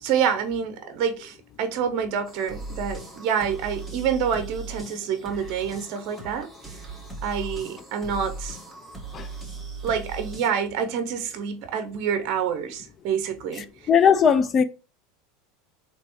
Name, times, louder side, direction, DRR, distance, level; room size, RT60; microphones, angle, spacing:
voice 1, 0.0-6.5 7.2-8.6 9.8-13.6, right 7 dB, 55° right, 0.6 m, -27 dB
sound 1, 2.3-10.5, right 3 dB, 5° left, 1.4 m, -38 dB
voice 2, 13.9-14.6, left 7 dB, 35° left, 0.4 m, -18 dB
3.3 x 2.9 x 2.9 m
hypercardioid pair, 100°, 0 cm